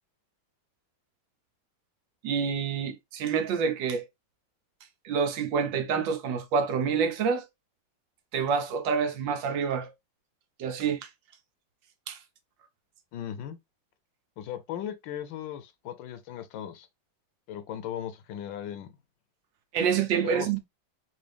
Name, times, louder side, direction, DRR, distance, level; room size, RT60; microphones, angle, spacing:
voice 1, 2.2-4.1 5.0-7.5 8.3-9.9 10.6-11.1 12.1-12.2 19.7-20.6, right 6 dB, 80° right, 1.4 m, -27 dB
voice 2, 13.1-13.6 14.4-16.9 17.5-18.9 20.2-20.6, left 10 dB, 80° left, 1.3 m, -37 dB
4.0 x 2.5 x 3.3 m
omnidirectional pair, 2.1 m